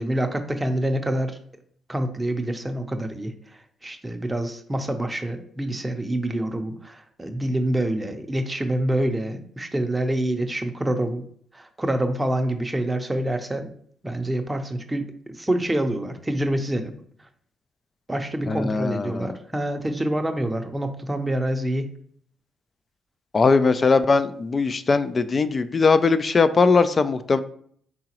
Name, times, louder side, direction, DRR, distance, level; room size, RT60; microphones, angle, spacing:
voice 1, 0.0-1.4 1.9-11.2 11.5-13.7 14.0-17.0 18.1-21.9, right 1 dB, 15° right, 6 dB, 0.6 m, -26 dB
voice 2, 18.5-19.4 23.3-27.4, left 4 dB, 35° left, 13 dB, 0.3 m, -20 dB
4.8 x 3.7 x 2.9 m, 0.62 s
cardioid pair, 90°, 0 cm